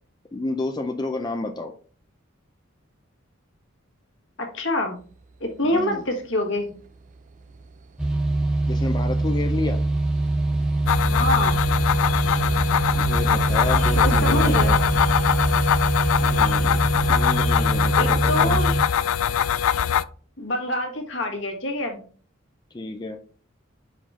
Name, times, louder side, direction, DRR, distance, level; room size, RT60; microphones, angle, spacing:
voice 1, 0.3-1.7 5.6-6.0 8.7-9.8 13.0-14.8 16.2-16.8 17.1-18.8 22.7-23.2, left 2 dB, 20° left, 5 dB, 0.4 m, -30 dB
voice 2, 4.5-5.0 5.4-6.7 11.1-11.6 13.9-14.7 18.0-18.7 20.4-22.0, left 1 dB, 65° left, 3 dB, 1.7 m, -25 dB
sound 1, 6.9-18.2, right 3 dB, 40° right, 0.4 m, -32 dB
sound 2, 8.0-18.8, right 2 dB, 5° right, 0.8 m, -23 dB
sound 3, 10.9-20.0, left 9 dB, 90° left, 0.3 m, -22 dB
5.7 x 4.9 x 3.6 m, 0.42 s
head